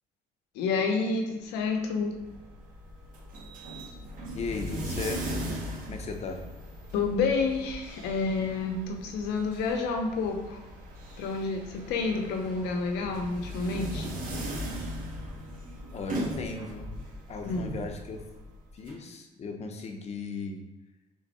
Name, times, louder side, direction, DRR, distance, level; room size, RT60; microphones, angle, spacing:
voice 1, 0.5-2.1 6.9-10.6 11.2-14.1 17.5-17.7, left 4 dB, 90° left, 3 dB, 0.7 m, -29 dB
sound 1, 1.9-18.9, right 1 dB, 55° right, 1.0 m, -39 dB
voice 2, 4.3-5.2 5.9-6.4 15.9-16.9 17.3-18.2 18.7-20.6, left 4 dB, 40° left, 3 dB, 0.6 m, -36 dB
3.6 x 3.2 x 4.1 m, 1.1 s
cardioid pair, 110°, 17 cm